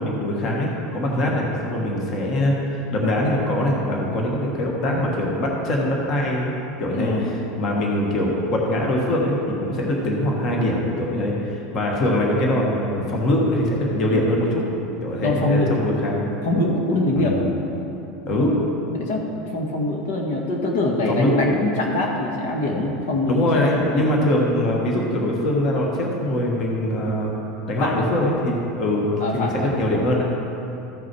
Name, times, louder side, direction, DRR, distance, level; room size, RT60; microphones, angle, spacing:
voice 1, 0.0-6.5 6.8-14.6 15.0-16.2 17.1-17.3 18.2-18.5 21.1-21.5 23.3-27.3 27.7-29.1 29.3-30.2, left 1 dB, 35° left, -1 dB, 1.4 m, -22 dB
voice 2, 6.9-7.3 15.2-15.8 16.4-17.5 18.9-24.1 27.8-28.1 29.2-29.7, left 2 dB, 75° left, 0 dB, 1.6 m, -24 dB
14.0 x 5.9 x 4.6 m, 2.9 s
supercardioid pair, 160°, 0 cm